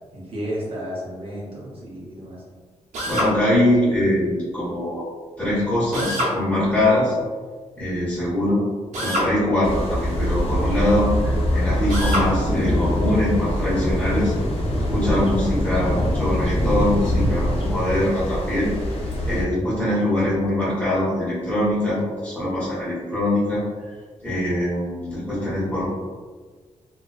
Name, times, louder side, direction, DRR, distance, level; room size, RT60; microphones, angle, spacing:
voice 1, 0.1-2.4, equal, 50° right, -6 dB, 0.8 m, -32 dB
Drill, 2.9-3.3 5.9-6.4 8.9-9.3 11.9-12.3, equal, 85° right, 0.7 m, -24 dB
voice 2, 3.0-5.0 5.4-7.1 7.8-8.6 9.0-14.3 14.9-18.7 19.2-23.6 24.2-25.8, left 1 dB, 10° left, -12 dB, 1.1 m, -23 dB
sound 1, 9.6-19.4, equal, 55° left, 0.5 m, -23 dB
2.4 x 2.2 x 2.4 m, 1.5 s
wide cardioid pair, 145°, 12 cm